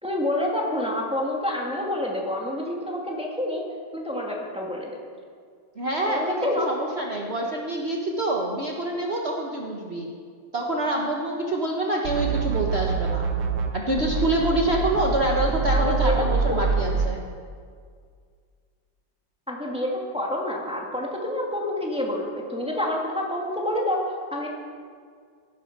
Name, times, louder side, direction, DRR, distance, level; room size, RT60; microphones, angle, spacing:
voice 1, 0.0-3.6 3.9-5.0 6.1-6.7 15.7-16.6 19.5-24.5, left 1 dB, 5° right, -2 dB, 2.1 m, -28 dB
voice 2, 5.8-10.1 10.5-13.3 13.7-17.2, right 1 dB, 40° right, -1 dB, 1.4 m, -26 dB
sound 1, 12.0-13.7 14.0-17.1, right 4 dB, 85° right, 1.8 m, -25 dB
16.5 x 11.5 x 6.0 m, 2.1 s
omnidirectional pair, 2.0 m